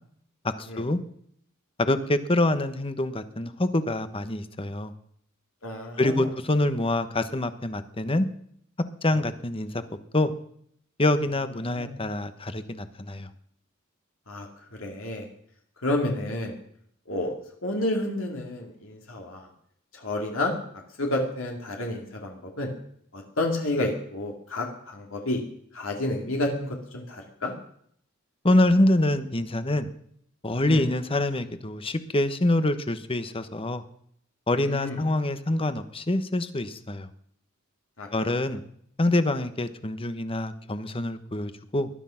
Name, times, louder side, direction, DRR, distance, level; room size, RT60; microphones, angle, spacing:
voice 1, 0.6-1.0 1.8-4.9 6.0-8.3 9.0-9.8 10.1-10.3 11.0-13.3 28.4-29.9 30.4-33.8 34.5-37.1 38.1-38.6 39.0-41.9, left 1 dB, 25° left, 11 dB, 1.2 m, -25 dB
voice 2, 5.6-6.3 9.1-9.2 11.8-12.0 14.3-14.5 14.8-15.3 15.8-16.5 17.1-17.3 17.6-19.5 19.9-20.5 21.0-22.7 23.1-25.4 25.7-27.5 30.6-30.8 34.5-35.0 38.0-38.1, left 1 dB, 70° left, 1 dB, 2.7 m, -30 dB
20.0 x 12.0 x 5.8 m, 0.67 s
head